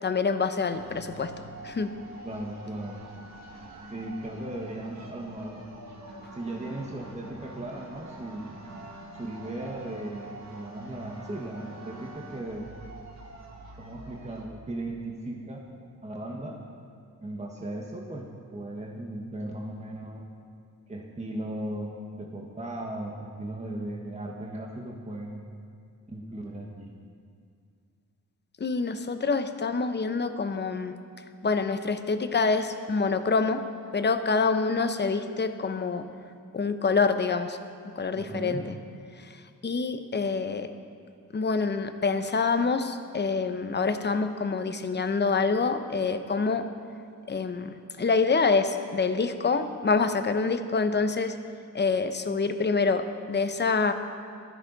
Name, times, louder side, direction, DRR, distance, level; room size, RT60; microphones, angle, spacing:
voice 1, 0.0-1.3 1.6-1.9 28.6-30.9 31.4-33.6 33.9-36.1 36.5-37.6 38.0-38.8 39.2-40.7 41.3-46.6 47.3-51.4 51.7-53.9, left 4 dB, 35° left, 9 dB, 0.9 m, -26 dB
sound 1, 0.7-14.5, right 2 dB, 60° right, 2.0 m, -45 dB
voice 2, 2.2-3.0 3.9-5.6 6.3-8.6 9.2-12.7 13.8-15.6 16.0-16.6 17.2-20.2 20.9-25.4 26.1-26.9 38.1-38.7, right 1 dB, 20° right, -1 dB, 1.4 m, -37 dB
16.0 x 13.5 x 4.1 m, 2.2 s
cardioid pair, 90°, 32 cm